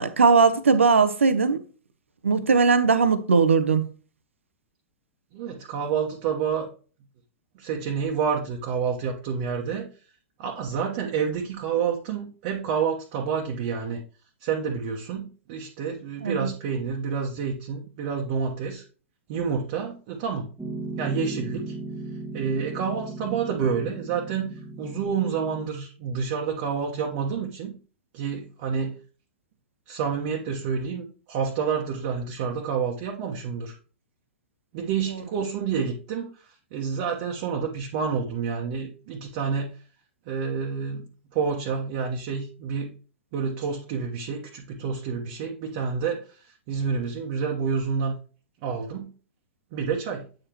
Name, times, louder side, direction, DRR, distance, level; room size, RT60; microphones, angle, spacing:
voice 1, 0.0-1.6 2.2-3.8 16.2-16.5, right 5 dB, 75° right, 0.7 m, -19 dB
voice 2, 5.3-6.7 7.5-9.9 10.4-14.0 14.4-18.9 19.3-20.5 21.0-21.8 22.3-27.7 28.1-28.9 29.9-33.8 34.7-39.7 40.3-42.9 43.3-48.2 48.6-49.1 49.7-50.3, right 6 dB, 45° right, 1.1 m, -29 dB
Piano, 20.6-25.7, right 2 dB, 5° right, 1.3 m, -37 dB
8.6 x 5.0 x 3.0 m
figure-of-eight pair, 105°, 7 cm